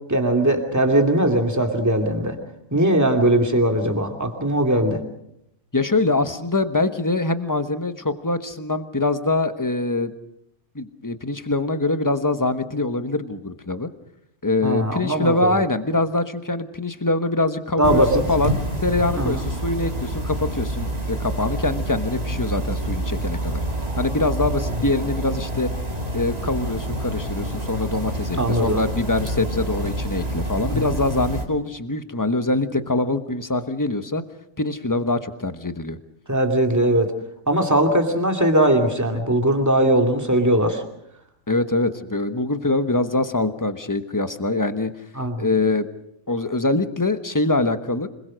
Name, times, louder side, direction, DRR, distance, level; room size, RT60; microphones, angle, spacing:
voice 1, 0.1-2.4 2.7-5.0 14.6-15.5 17.8-18.2 19.2-19.4 24.7-24.8 28.4-28.8 30.7-30.9 36.3-37.1 37.5-40.8 45.2-45.4, right 1 dB, 10° right, 3 dB, 2.6 m, -20 dB
voice 2, 5.7-10.1 10.7-13.9 14.4-23.6 24.0-25.7 26.1-34.2 34.6-36.0 41.5-44.9 45.4-45.9 46.3-48.1, left 2 dB, 15° left, 9 dB, 1.1 m, -24 dB
sound 1, 17.8-31.4, right 1 dB, 30° right, 2.7 m, -27 dB
26.0 x 21.5 x 6.4 m, 0.78 s
omnidirectional pair, 1.4 m